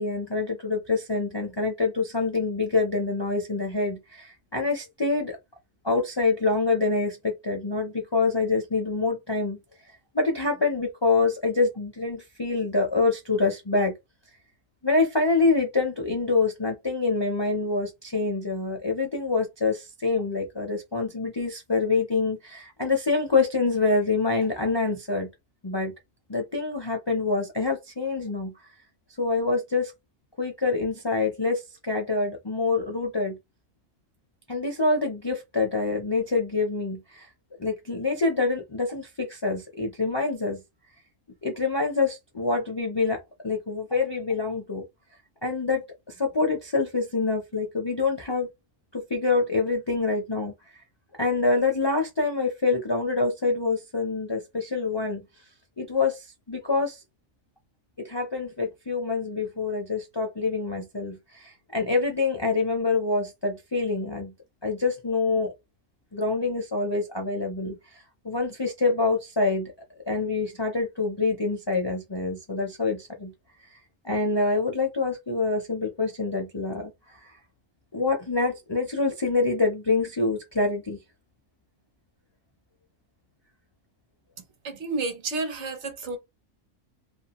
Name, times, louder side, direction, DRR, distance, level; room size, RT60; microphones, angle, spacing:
voice 1, 0.0-5.4 5.8-9.6 10.1-13.9 14.8-25.3 25.6-25.9 26.3-28.5 29.2-29.9 30.4-33.4 34.5-37.3 37.6-40.6 41.4-44.9 45.4-48.5 48.9-50.5 51.2-55.2 55.8-57.0 58.0-64.3 64.6-65.5 66.1-69.7 70.1-73.3 74.0-76.9 77.2-77.3 77.9-81.0, left 3 dB, 40° left, 0.4 m, -26 dB
voice 2, 84.6-86.2, right 3 dB, 60° right, 1.0 m, -30 dB
2.5 x 2.3 x 2.9 m
omnidirectional pair, 1.4 m